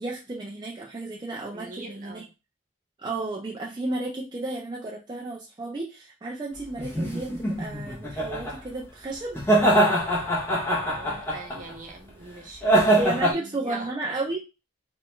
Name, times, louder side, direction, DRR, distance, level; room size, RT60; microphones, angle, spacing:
voice 1, 0.0-2.2 3.0-9.4 13.0-14.4, right 2 dB, 20° right, 0.4 m, -33 dB
voice 2, 1.5-2.2 10.7-12.9 13.2-13.9, right 2 dB, 40° right, 0.8 m, -42 dB
sound 1, 6.8-8.5 9.3-11.7 12.6-13.3, right 1 dB, 10° left, 0.7 m, -23 dB
3.0 x 2.3 x 3.0 m
head